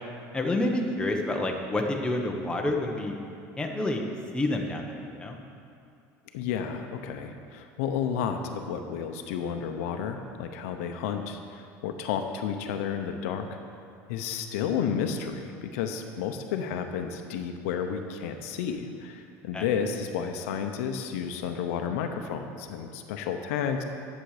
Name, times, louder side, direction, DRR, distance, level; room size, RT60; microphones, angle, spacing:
voice 1, 0.3-3.1 3.6-4.0 4.3-5.4 19.5-19.7, left 2 dB, 10° left, 1 dB, 1.1 m, -28 dB
voice 2, 6.3-13.5 14.1-23.8, left 7 dB, 85° left, 6 dB, 0.8 m, -31 dB
10.5 x 7.4 x 5.0 m, 2.6 s
supercardioid pair, 120°, 8 cm